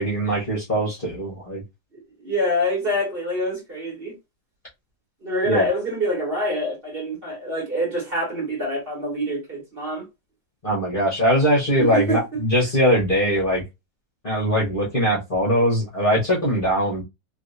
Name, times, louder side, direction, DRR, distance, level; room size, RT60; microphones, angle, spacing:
voice 1, 0.0-1.6 5.4-5.7 10.6-13.6 14.2-17.0, equal, 35° left, 1.1 m, -21 dB
voice 2, 1.9-4.1 5.2-10.0 11.8-12.4, equal, 30° right, 1.9 m, -26 dB
3.3 x 3.1 x 2.6 m
omnidirectional pair, 2.1 m